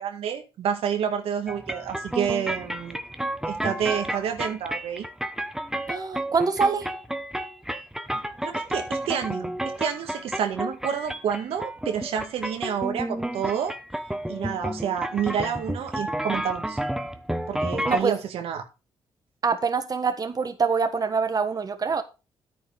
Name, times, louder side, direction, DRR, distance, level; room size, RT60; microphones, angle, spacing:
voice 1, 0.0-3.0 3.5-5.1 8.1-13.8 14.3-16.8 17.5-18.6, right 8 dB, 85° right, 1.9 m, -29 dB
sound 1, 1.5-18.0, right 1 dB, 5° right, 1.2 m, -31 dB
voice 2, 5.9-6.9 17.8-18.2 19.4-22.0, right 5 dB, 40° right, 1.4 m, -25 dB
10.0 x 9.5 x 3.5 m
cardioid pair, 75°, 10 cm